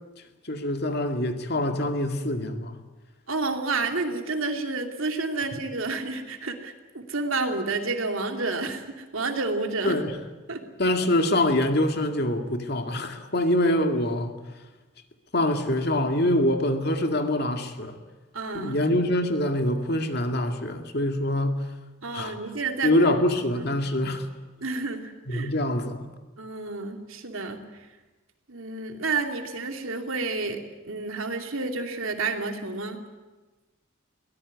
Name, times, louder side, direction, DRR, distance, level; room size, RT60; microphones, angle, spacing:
voice 1, 0.5-2.8 9.8-10.1 10.8-14.4 15.3-18.0 18.5-21.6 22.1-22.4 22.8-24.3 25.3-26.1, left 1 dB, 50° left, 6 dB, 2.1 m, -25 dB
voice 2, 3.3-10.0 10.5-10.6 18.3-18.8 22.0-22.9 23.5-23.7 24.6-25.5 26.4-27.9 28.5-33.0, right 3 dB, 80° right, 4 dB, 2.8 m, -30 dB
22.5 x 18.5 x 9.6 m, 1.2 s
head